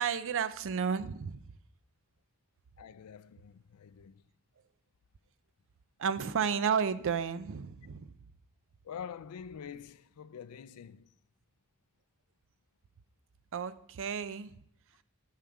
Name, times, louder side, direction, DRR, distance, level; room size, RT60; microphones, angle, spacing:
voice 1, 0.0-1.4 6.0-8.1 13.5-14.5, right 6 dB, 60° right, 0.5 m, -32 dB
voice 2, 2.8-4.2 8.8-11.1, left 7 dB, 90° left, 0.4 m, -46 dB
9.2 x 6.6 x 4.8 m
head